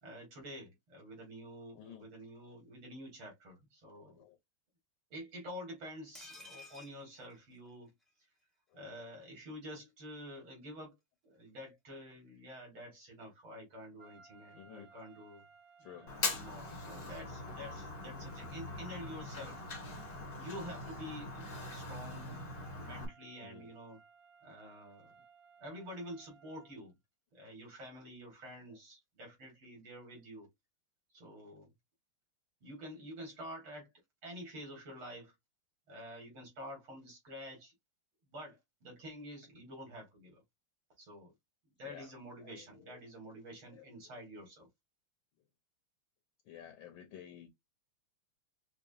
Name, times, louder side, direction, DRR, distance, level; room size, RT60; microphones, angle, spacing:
voice 1, 0.0-4.2 5.1-7.9 8.7-10.9 11.2-15.4 16.2-19.7 20.4-24.0 24.4-25.1 25.6-26.9 27.3-30.5 31.1-31.7 32.6-33.9 34.2-35.3 35.9-37.7 38.3-40.4 41.0-41.3 41.8-44.7, equal, 75° right, 2.9 m, -48 dB
voice 2, 1.7-2.1 3.9-4.4 8.7-8.8 14.6-14.9 15.8-16.1 23.4-23.7 41.8-42.1 42.4-43.0 43.7-44.2 46.4-47.5, left 10 dB, 70° left, 1.4 m, -53 dB
sound 1, 6.1-8.1 8.4-8.5 8.8-8.9, left 2 dB, ahead, 0.5 m, -54 dB
sound 2, 14.0-26.8, right 5 dB, 55° right, 1.2 m, -61 dB
Fire, 16.1-23.1, left 2 dB, 45° left, 0.7 m, -42 dB
5.9 x 2.1 x 2.6 m
omnidirectional pair, 2.3 m